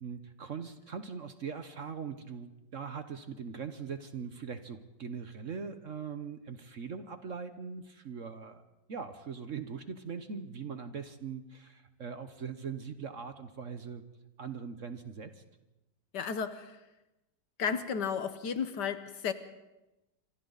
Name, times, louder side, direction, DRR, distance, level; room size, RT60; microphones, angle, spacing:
voice 1, 0.0-8.6 8.9-14.0 14.4-15.4, right 6 dB, 50° right, 9 dB, 1.3 m, -41 dB
voice 2, 16.1-16.8 17.6-19.3, left 6 dB, 65° left, 11 dB, 1.7 m, -33 dB
27.0 x 25.5 x 4.1 m, 0.98 s
omnidirectional pair, 2.0 m